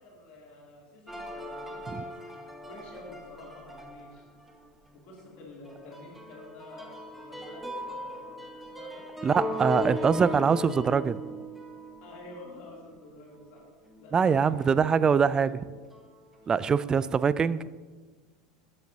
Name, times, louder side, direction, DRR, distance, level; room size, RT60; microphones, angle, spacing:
voice 1, 0.0-2.2 2.6-4.3 4.9-9.0 12.0-13.6 14.0-15.3 16.7-17.0, left 2 dB, 50° left, -3 dB, 2.9 m, -49 dB
sound 1, 1.1-4.7 5.2-5.3 5.6-13.6 13.9-14.1 14.6-15.0 15.5-16.2, equal, 5° right, 1.4 m, -38 dB
voice 2, 9.2-11.2 14.1-15.5 16.5-17.6, right 6 dB, 25° right, 17 dB, 0.3 m, -23 dB
13.0 x 8.6 x 2.8 m, 1.4 s
figure-of-eight pair, 80°, 3 cm